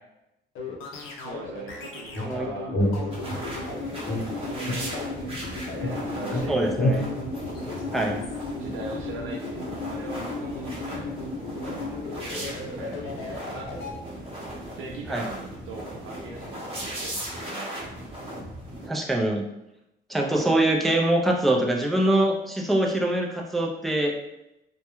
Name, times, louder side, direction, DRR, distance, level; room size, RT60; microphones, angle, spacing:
sound 1, 0.6-13.9, left 4 dB, 90° left, 0.5 m, -35 dB
voice 1, 1.2-2.7 3.3-6.9 8.6-14.2 14.8-17.8, right 3 dB, 85° right, -1 dB, 0.4 m, -41 dB
sound 2, 2.1-3.6 4.1-5.5 5.8-8.3, equal, 50° left, 0.9 m, -29 dB
sound 3, 3.1-18.9, right 1 dB, 30° right, 0.8 m, -37 dB
voice 2, 6.5-7.1 7.9-8.2 15.1-15.2 18.8-19.4 20.1-24.1, right 1 dB, ahead, -1 dB, 0.3 m, -23 dB
2.2 x 2.1 x 2.9 m, 0.90 s
cardioid pair, 90°, 20 cm